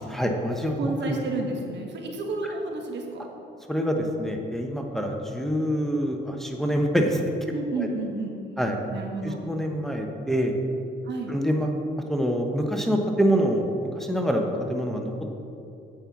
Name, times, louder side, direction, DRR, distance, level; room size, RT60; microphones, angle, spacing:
voice 1, 0.0-1.2 3.7-7.2 7.8-7.9 8.6-8.8 9.2-10.6 11.3-11.7 12.1-13.7 13.9-15.3, equal, ahead, 2 dB, 1.0 m, -26 dB
voice 2, 0.7-3.3 7.5-8.3 8.9-9.4 11.0-11.4, right 3 dB, 65° right, 2 dB, 1.6 m, -31 dB
8.9 x 5.6 x 7.0 m, 2.7 s
cardioid pair, 90°, 20 cm